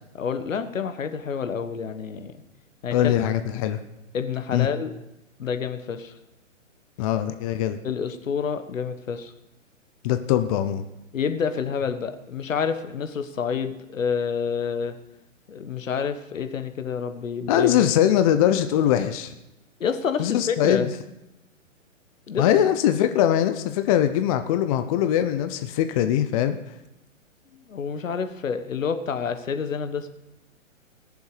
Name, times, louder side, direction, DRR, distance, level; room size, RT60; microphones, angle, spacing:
voice 1, 0.1-2.4 2.8-3.1 3.6-3.7 4.1-4.9 5.4-6.1 7.8-9.3 11.1-15.0 15.5-17.9 19.8-20.9 22.3-22.6 27.7-30.1, left 6 dB, 75° left, 9 dB, 1.4 m, -28 dB
voice 2, 2.9-3.8 4.5-4.7 7.0-7.8 10.0-10.8 17.5-19.3 20.2-20.9 22.4-26.6, left 11 dB, 30° left, 9 dB, 0.6 m, -22 dB
19.5 x 7.0 x 4.9 m, 0.92 s
hypercardioid pair, 130°, 39 cm